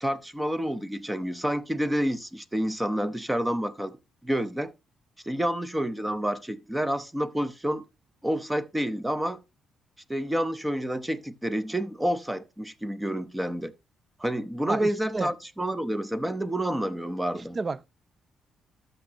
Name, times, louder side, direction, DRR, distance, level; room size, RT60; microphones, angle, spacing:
voice 1, 0.0-4.0 4.2-4.7 5.2-7.8 8.2-9.4 10.1-13.7 14.2-17.6, equal, 10° right, 0.7 m, -29 dB
voice 2, 14.7-15.3 17.3-17.9, right 3 dB, 30° right, 0.4 m, -32 dB
12.5 x 6.6 x 2.8 m
cardioid pair, 90°, 0 cm